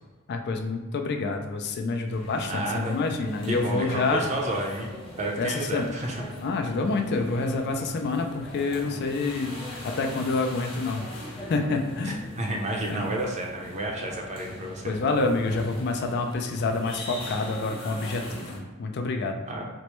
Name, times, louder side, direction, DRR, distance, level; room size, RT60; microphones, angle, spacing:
voice 1, 0.3-4.2 5.4-5.9 6.4-11.0 11.5-12.2 12.9-13.1 14.8-19.4, left 3 dB, 50° left, 4 dB, 0.3 m, -27 dB
sound 1, 2.1-18.6, left 1 dB, 25° left, 0.9 m, -40 dB
voice 2, 2.4-3.0 3.5-4.9 5.2-6.2 12.0-15.0 19.5-19.6, right 1 dB, 35° right, 0 dB, 0.5 m, -31 dB
4.3 x 2.1 x 3.0 m, 1.3 s
head